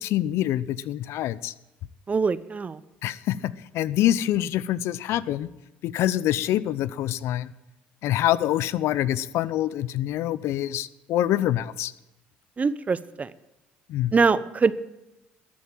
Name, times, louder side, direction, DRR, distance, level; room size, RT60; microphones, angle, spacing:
voice 1, 0.0-1.5 3.0-5.5 5.8-7.5 8.0-11.9 13.9-14.1, left 13 dB, 65° left, 18 dB, 0.6 m, -25 dB
voice 2, 2.1-2.8 12.6-13.3 14.1-14.7, right 4 dB, 30° right, 16 dB, 0.8 m, -23 dB
13.5 x 8.6 x 9.0 m, 0.99 s
hypercardioid pair, 70°, 5 cm